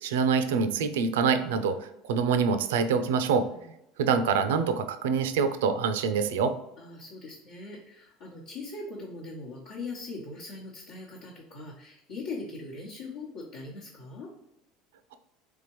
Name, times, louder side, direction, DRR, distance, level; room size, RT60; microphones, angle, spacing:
voice 1, 0.0-3.5 4.0-6.5, right 5 dB, 80° right, 10 dB, 0.4 m, -25 dB
voice 2, 6.8-14.3, left 3 dB, 70° left, -6 dB, 1.0 m, -41 dB
3.6 x 3.5 x 3.0 m, 0.84 s
hypercardioid pair, 80°, 0 cm